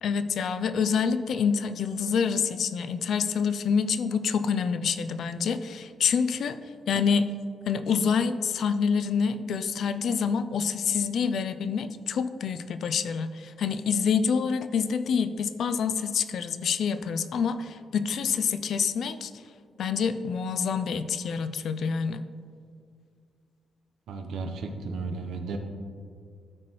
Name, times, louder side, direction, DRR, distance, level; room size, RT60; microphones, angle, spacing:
voice 1, 0.0-6.6 6.9-7.3 7.7-19.3 19.8-22.2, left 6 dB, 65° left, 11 dB, 0.4 m, -27 dB
voice 2, 24.1-25.6, right 4 dB, 90° right, 4 dB, 0.8 m, -34 dB
13.0 x 4.5 x 3.1 m, 2.2 s
cardioid pair, 125°, 0 cm